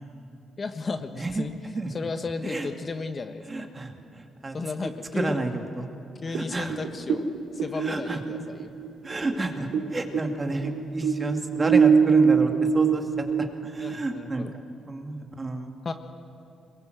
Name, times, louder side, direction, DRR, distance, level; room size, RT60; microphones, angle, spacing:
voice 1, 0.6-1.5 1.9-3.7 4.5-5.4 6.2-7.2 7.5-8.7 13.8-14.5 15.8-15.9, left 4 dB, 35° left, 7 dB, 1.3 m, -34 dB
voice 2, 3.5-4.6 5.1-5.9 6.3-6.8 7.8-8.2 9.0-14.5 14.8-15.7, right 2 dB, 25° right, 4 dB, 2.4 m, -31 dB
sound 1, 6.3-9.9 10.1-14.3, right 6 dB, 75° right, 3.0 m, -23 dB
23.0 x 21.5 x 8.0 m, 2.6 s
cardioid pair, 90°, 0 cm